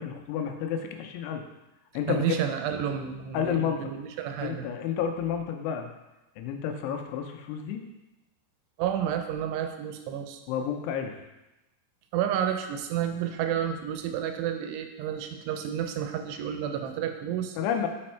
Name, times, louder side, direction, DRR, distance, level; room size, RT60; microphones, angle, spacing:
voice 1, 0.0-1.4 1.9-2.3 3.3-3.9 4.4-5.9 6.4-7.8 10.5-11.2 17.6-17.9, left 8 dB, 85° left, 4 dB, 2.8 m, -30 dB
voice 2, 2.1-4.7 8.8-10.4 12.1-17.6, right 9 dB, 85° right, 7 dB, 2.7 m, -30 dB
6.3 x 4.2 x 4.3 m, 0.99 s
omnidirectional pair, 4.8 m